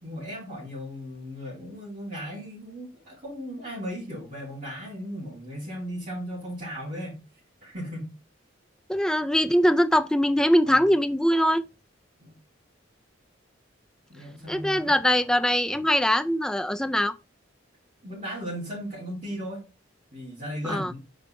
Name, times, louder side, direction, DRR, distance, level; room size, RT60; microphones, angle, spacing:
voice 1, 0.0-7.2 7.6-8.1 10.6-10.9 12.2-12.4 14.1-15.0 18.0-19.6 20.1-21.0, equal, 40° right, 3.9 m, -36 dB
voice 2, 8.9-11.6 14.5-17.1 20.7-20.9, equal, 5° left, 0.3 m, -22 dB
5.2 x 4.7 x 4.3 m
head